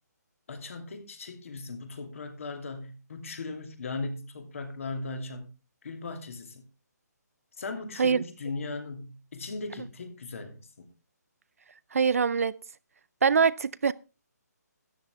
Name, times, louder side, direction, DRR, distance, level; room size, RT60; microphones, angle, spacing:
voice 1, 0.5-5.5 5.8-6.6 7.6-10.9, left 3 dB, 50° left, 2.7 m, -38 dB
voice 2, 11.9-12.5 13.2-13.9, right 6 dB, 55° right, 0.5 m, -23 dB
13.0 x 10.0 x 3.6 m
hypercardioid pair, 170°, 9 cm